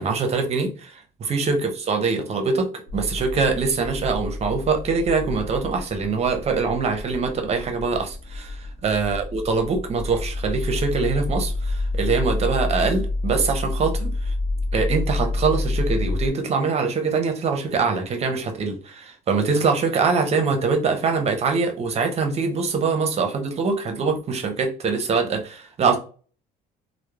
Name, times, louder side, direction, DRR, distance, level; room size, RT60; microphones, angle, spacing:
voice 1, 0.0-1.0 1.3-8.5 8.8-14.3 14.7-26.0, right 4 dB, 40° right, 0.6 m, -23 dB
sound 1, 2.9-16.3, left 2 dB, 80° left, 0.6 m, -28 dB
2.9 x 2.0 x 2.3 m
cardioid pair, 110°, 17 cm